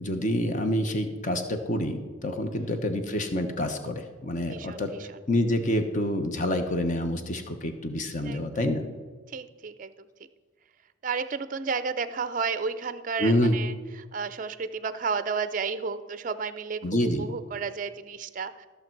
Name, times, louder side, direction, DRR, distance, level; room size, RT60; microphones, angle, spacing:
voice 1, 0.0-4.9 5.3-8.9 13.2-13.6 16.8-17.3, left 1 dB, 40° left, 6 dB, 1.0 m, -27 dB
voice 2, 4.5-5.2 8.2-8.4 9.3-9.9 11.0-13.7 14.1-18.7, right 5 dB, 40° right, 13 dB, 0.4 m, -32 dB
14.5 x 6.7 x 4.6 m, 1.4 s
head